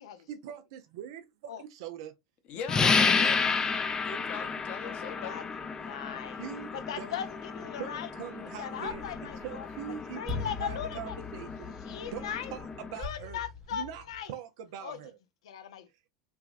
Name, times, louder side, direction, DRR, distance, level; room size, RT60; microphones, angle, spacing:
voice 1, 0.3-2.1 6.4-6.7 7.0-7.2 7.8-9.0 9.4-11.8 12.1-13.4 13.7-15.2, right 10 dB, 70° right, 0.4 m, -42 dB
voice 2, 2.5-3.5 4.0-5.4, left 7 dB, 50° left, 0.8 m, -40 dB
sound 1, 2.7-13.0, left 5 dB, 25° left, 0.4 m, -32 dB
voice 3, 4.8-6.4 6.7-8.1 8.6-11.2 11.8-12.5 13.0-14.3 14.8-15.0 15.4-15.9, left 9 dB, 80° left, 0.5 m, -39 dB
sound 2, 8.8-14.2, left 4 dB, 20° right, 0.8 m, -42 dB
3.4 x 2.2 x 2.4 m
hypercardioid pair, 95°, 3 cm